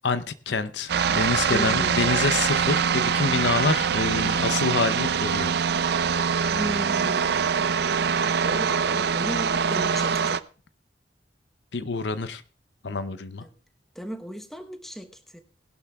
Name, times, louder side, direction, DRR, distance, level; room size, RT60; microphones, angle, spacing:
voice 1, 0.0-5.5 11.7-12.4 12.8-13.4, left 4 dB, 75° left, 13 dB, 0.7 m, -27 dB
sound 1, 0.9-10.4, right 6 dB, 65° right, 0.5 m, -24 dB
voice 2, 1.5-2.2 6.5-7.5 8.4-10.4 13.4-13.5 13.9-15.4, equal, ahead, 5 dB, 1.0 m, -35 dB
20.0 x 11.5 x 2.4 m, 0.37 s
head